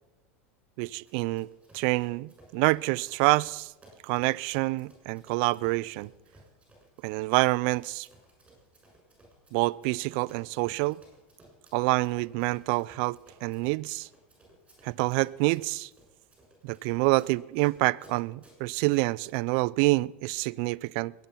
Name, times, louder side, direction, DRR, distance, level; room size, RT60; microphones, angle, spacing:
voice 1, 0.8-1.5 1.7-3.7 4.0-6.1 7.0-8.1 9.5-11.0 11.7-14.1 14.8-15.9 16.6-21.1, right 23 dB, 60° right, 0.4 m, -27 dB
Run, 1.0-19.1, right 2 dB, 15° right, 6.8 m, -59 dB
22.0 x 9.0 x 5.9 m
hypercardioid pair, 100°, 7 cm